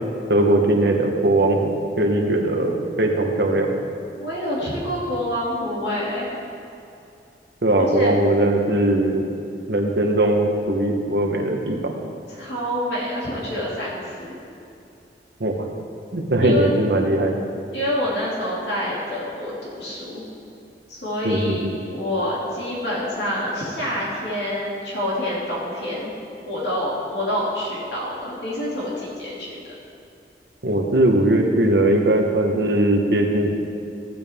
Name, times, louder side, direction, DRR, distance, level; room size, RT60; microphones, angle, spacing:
voice 1, 0.3-1.7 2.0-3.7 7.6-9.3 9.7-11.9 15.4-15.5 16.1-17.3 21.2-21.7 30.6-33.5, right 1 dB, 70° right, 2 dB, 1.1 m, -19 dB
voice 2, 4.2-6.3 7.9-8.1 12.3-14.4 16.4-16.7 17.7-20.2 20.9-26.1 26.5-29.6, left 1 dB, 75° left, -6 dB, 2.7 m, -27 dB
14.5 x 8.8 x 3.6 m, 2.6 s
head